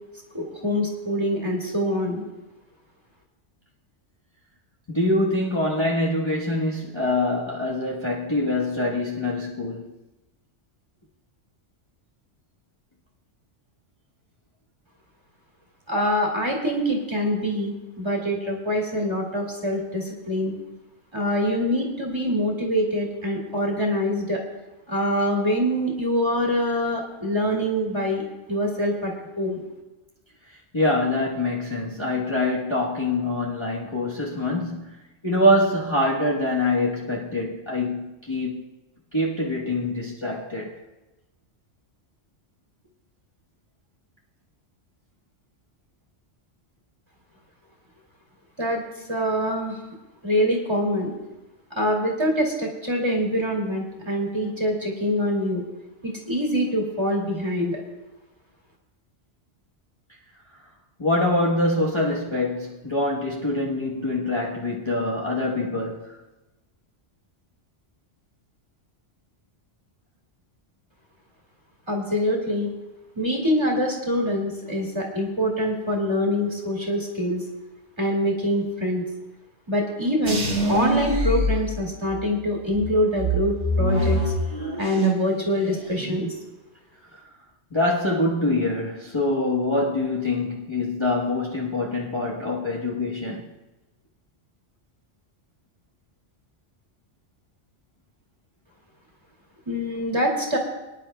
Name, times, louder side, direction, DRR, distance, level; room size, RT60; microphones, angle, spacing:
voice 1, 0.3-2.2 15.9-20.5 21.1-24.4 24.9-28.2 28.5-29.6 48.6-48.8 49.1-49.8 50.2-51.1 51.8-55.6 56.0-57.8 71.9-72.7 73.2-77.4 78.0-79.0 79.7-80.4 80.7-84.2 84.8-86.3 99.7-100.6, equal, 20° right, 2.2 m, -24 dB
voice 2, 4.9-9.9 30.7-38.6 39.1-40.8 61.0-66.2 87.1-87.2 87.7-93.5, left 1 dB, 25° left, 1.1 m, -24 dB
sound 1, 80.2-82.3 82.7-85.3 85.6-86.2, equal, 50° right, 1.9 m, -25 dB
23.5 x 10.5 x 2.2 m
omnidirectional pair, 1.2 m